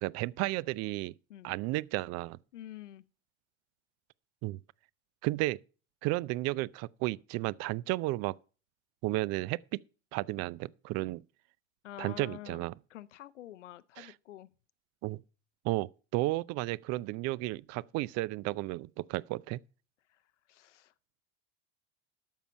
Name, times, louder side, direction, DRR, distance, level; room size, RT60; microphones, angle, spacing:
voice 1, 0.0-1.1 1.4-2.4 4.4-4.6 5.2-5.6 6.0-8.3 9.0-9.8 10.1-11.2 12.0-12.7 14.0-14.1 15.0-15.2 15.6-19.6, right 19 dB, 45° right, 0.5 m, -33 dB
voice 2, 2.5-3.0 11.8-12.6 12.9-14.5 20.1-20.9, left 13 dB, 85° left, 0.5 m, -48 dB
12.0 x 7.4 x 5.4 m
hypercardioid pair, 75°, 35 cm